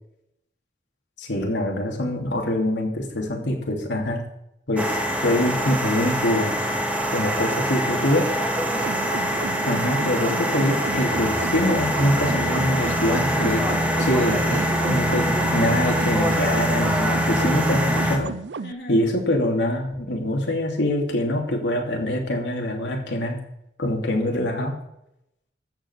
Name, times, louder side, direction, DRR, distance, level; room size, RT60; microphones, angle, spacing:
voice 1, 1.2-4.2 4.7-6.5 7.1-8.2 9.6-13.6 14.0-14.6 14.8-18.3 18.9-23.4 23.8-24.8, left 1 dB, 85° left, 1 dB, 2.8 m, -24 dB
sound 1, 4.8-18.2, equal, 5° right, 1.4 m, -24 dB
voice 2, 7.9-9.0 13.5-14.7 18.6-19.0, left 2 dB, 65° left, -1 dB, 2.8 m, -40 dB
sound 2, 8.7-18.7, right 4 dB, 80° right, 0.5 m, -33 dB
13.5 x 5.2 x 8.1 m, 0.80 s
head